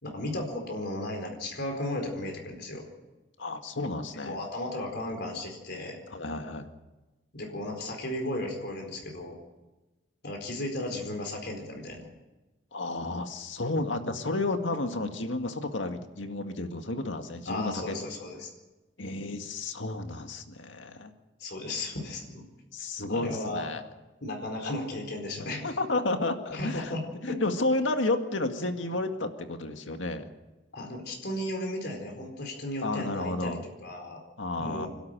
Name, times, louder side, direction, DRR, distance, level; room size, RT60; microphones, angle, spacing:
voice 1, 0.0-2.8 4.1-6.0 7.3-9.3 10.2-12.1 17.5-18.5 21.4-22.4 23.1-23.7 24.2-25.8 26.5-27.4 30.7-34.2 34.6-34.9, left 1 dB, 60° left, 2 dB, 4.4 m, -35 dB
voice 2, 3.4-4.4 6.1-6.7 12.7-18.0 19.0-21.1 22.7-23.8 25.4-27.0 27.2-30.2 32.8-33.6 34.4-34.9, left 2 dB, 80° left, 6 dB, 2.0 m, -31 dB
27.0 x 12.5 x 9.2 m, 1.1 s
head